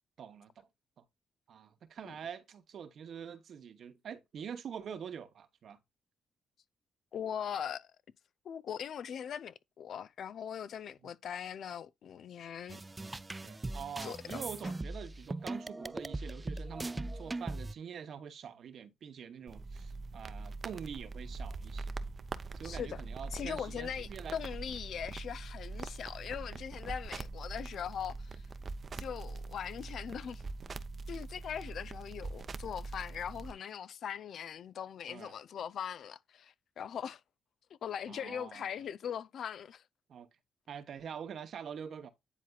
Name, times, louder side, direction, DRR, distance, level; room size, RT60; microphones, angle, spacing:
voice 1, 0.2-0.5 1.0-1.1 1.5-5.8 11.0-11.1 13.4-21.9 22.5-24.4 35.1-35.3 38.1-38.7 40.1-40.3 40.7-42.1, right 7 dB, 65° right, 1.0 m, -45 dB
voice 2, 7.1-7.9 8.4-12.8 14.0-14.7 22.6-23.0 23.3-28.4 29.0-30.4 31.1-37.2 37.8-39.8, left 8 dB, 65° left, 0.5 m, -40 dB
sound 1, 12.7-17.7, right 2 dB, 25° right, 0.4 m, -40 dB
sound 2, 19.5-33.5, right 3 dB, 50° right, 0.7 m, -43 dB
9.9 x 4.2 x 2.3 m
supercardioid pair, 55°, 0 cm